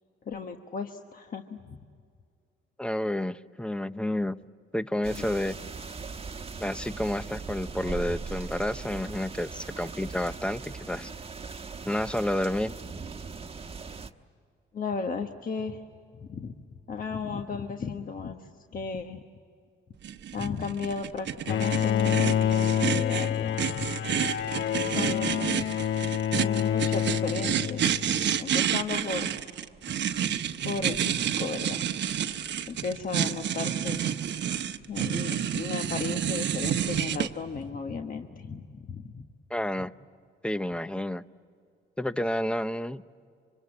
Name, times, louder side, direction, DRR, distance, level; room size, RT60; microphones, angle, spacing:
voice 1, 0.3-1.8 5.2-5.3 14.7-15.8 16.2-19.2 20.3-23.9 24.8-25.8 26.3-28.0 28.3-29.3 30.6-31.8 32.7-34.0 34.8-39.2, left 5 dB, 45° left, 4 dB, 1.3 m, -35 dB
voice 2, 2.8-4.4 4.7-5.6 6.6-11.1 11.8-12.7 39.5-39.9 40.4-41.2 42.0-43.0, left 1 dB, 5° left, 14 dB, 0.7 m, -30 dB
sound 1, 5.0-14.1, right 4 dB, 30° right, 1.2 m, -39 dB
sound 2, 20.0-37.3, right 9 dB, 65° right, 1.0 m, -29 dB
Bowed string instrument, 21.5-28.2, left 9 dB, 70° left, 0.6 m, -27 dB
27.0 x 24.5 x 8.8 m, 2.3 s
cardioid pair, 90°, 20 cm